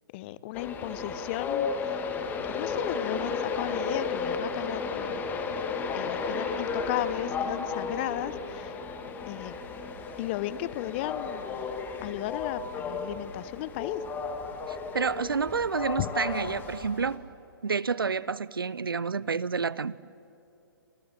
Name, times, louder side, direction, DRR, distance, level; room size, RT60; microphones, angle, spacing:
voice 1, 0.1-2.1 2.5-5.2 5.9-8.8 9.3-9.5 10.2-11.7 12.0-14.0 16.0-16.1, left 15 dB, 30° left, 0.8 m, -35 dB
Train, 0.5-17.2, left 5 dB, 15° left, 1.9 m, -33 dB
voice 2, 14.7-17.2 17.6-20.0, right 5 dB, 75° right, 0.7 m, -29 dB
29.5 x 27.5 x 7.3 m
figure-of-eight pair, 125°, 12 cm